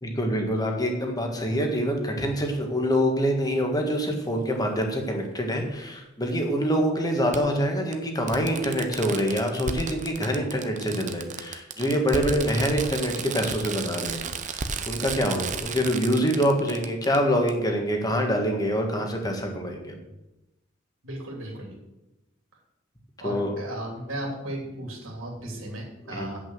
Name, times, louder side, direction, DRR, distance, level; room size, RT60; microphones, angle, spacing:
voice 1, 0.0-20.0 23.2-23.5 26.1-26.3, equal, 20° left, 2 dB, 1.7 m, -25 dB
Fireworks, 4.0-4.1 5.6-5.7 7.3-7.4 7.9-8.0 8.3-17.2 17.5-17.6, right 5 dB, 40° right, 0.8 m, -33 dB
voice 2, 21.0-21.7 23.2-26.4, right 1 dB, 80° right, 0 dB, 2.8 m, -35 dB
8.2 x 6.3 x 7.8 m, 0.97 s
head